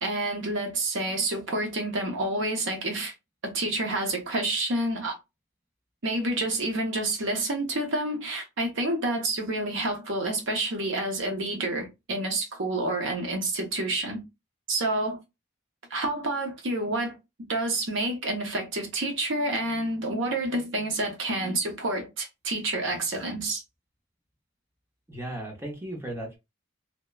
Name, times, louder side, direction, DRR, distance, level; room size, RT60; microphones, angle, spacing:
voice 1, 0.0-3.1 3.4-5.2 6.0-14.2 14.7-15.2 15.9-17.2 17.5-23.6, right 2 dB, 65° right, 0.8 m, -28 dB
voice 2, 25.1-26.4, right 1 dB, 10° right, 0.7 m, -36 dB
2.8 x 2.1 x 2.2 m
head